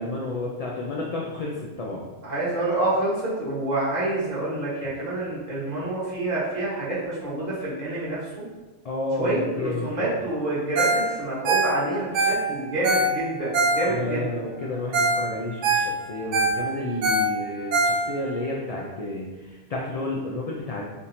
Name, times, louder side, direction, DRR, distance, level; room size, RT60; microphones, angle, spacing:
voice 1, 0.0-2.1 8.8-10.1 13.9-20.9, left 2 dB, 70° left, -3 dB, 0.3 m, -31 dB
voice 2, 2.2-8.4 9.2-14.3, right 2 dB, 40° right, -9 dB, 1.3 m, -27 dB
Ringtone, 10.8-11.1 11.3-14.2 14.6-14.7 14.9-15.2 15.5-18.4 18.8-18.9, right 2 dB, 80° right, 0.9 m, -23 dB
3.6 x 2.8 x 2.5 m, 1.2 s
omnidirectional pair, 1.2 m